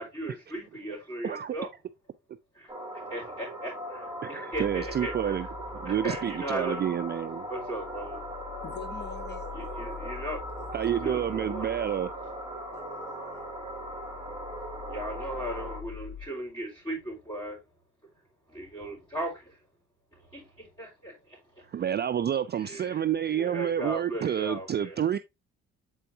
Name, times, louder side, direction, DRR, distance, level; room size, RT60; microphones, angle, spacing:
voice 1, 0.0-1.7 2.5-5.5 5.8-6.8 7.5-8.3 9.5-10.4 11.0-11.8 14.9-17.6 18.5-19.6 20.1-21.7 22.6-25.0, right 1 dB, 15° left, 4.3 m, -37 dB
voice 2, 1.2-1.6 4.2-5.5 5.8-7.5 10.7-12.1 21.7-25.2, right 9 dB, 35° right, 0.4 m, -29 dB
sound 1, 2.7-15.8, right 1 dB, 10° right, 2.4 m, -39 dB
sound 2, 4.5-16.2, left 6 dB, 60° left, 2.7 m, -45 dB
voice 3, 8.6-10.0 10.6-10.9 12.7-13.5, left 5 dB, 35° left, 1.0 m, -45 dB
7.8 x 4.5 x 2.7 m
cardioid pair, 90°, 30 cm